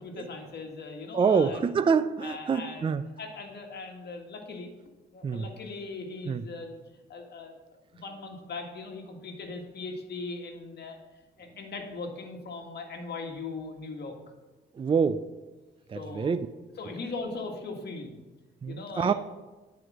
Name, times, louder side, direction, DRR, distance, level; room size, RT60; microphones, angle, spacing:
voice 1, 0.0-1.6 2.2-2.9 3.2-4.7 5.1-6.8 7.1-7.6 7.9-11.0 11.4-14.1 15.9-16.3 16.8-18.2 18.7-19.1, left 3 dB, 55° left, 3 dB, 1.8 m, -39 dB
voice 2, 1.1-3.0 5.2-5.5 6.3-6.4 14.8-15.2 15.9-16.5 18.6-19.1, right 6 dB, 25° right, 12 dB, 0.4 m, -26 dB
9.4 x 4.8 x 6.1 m, 1.2 s
cardioid pair, 90°, 20 cm